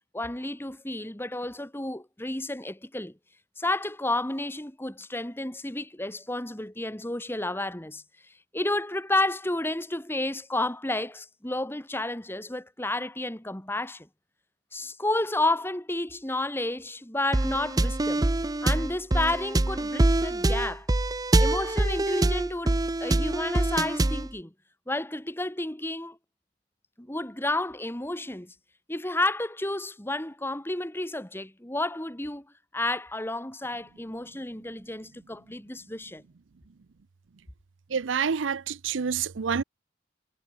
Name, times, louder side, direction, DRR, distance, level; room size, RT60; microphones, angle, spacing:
voice 1, 0.1-3.1 3.6-8.0 8.5-14.1 14.7-18.2 18.6-20.9 21.4-24.5 24.9-26.2 27.0-28.5 28.9-32.5 32.7-36.2, left 2 dB, 10° left, 1.9 m, -31 dB
sound 1, 17.3-24.3, right 2 dB, 20° right, 0.6 m, -25 dB
voice 2, 37.9-39.6, right 6 dB, 90° right, 0.6 m, -28 dB
head